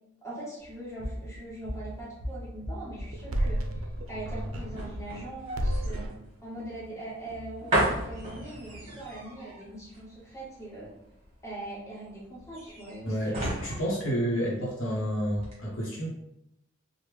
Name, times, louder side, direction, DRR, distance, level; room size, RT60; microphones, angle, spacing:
voice 1, 0.2-6.1 6.4-10.9 11.4-13.4, right 1 dB, 15° left, -9 dB, 1.3 m, -42 dB
sound 1, 0.6-15.0 15.3-15.5, right 1 dB, 30° right, 1.0 m, -35 dB
sound 2, 3.0-5.3 5.6-6.3, equal, 80° right, 0.4 m, -31 dB
voice 2, 13.0-16.1, equal, 70° left, -4 dB, 0.7 m, -30 dB
3.3 x 2.0 x 3.1 m, 0.82 s
head